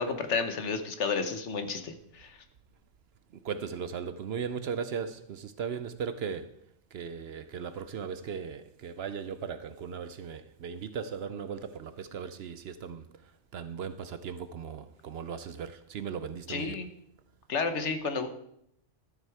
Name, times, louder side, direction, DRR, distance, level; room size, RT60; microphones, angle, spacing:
voice 1, 0.0-2.4 16.5-16.9 17.5-18.3, left 5 dB, 70° left, 1.3 m, -31 dB
voice 2, 3.3-6.6 6.9-16.8, right 6 dB, 65° right, 0.8 m, -37 dB
12.5 x 7.8 x 4.7 m
omnidirectional pair, 1.2 m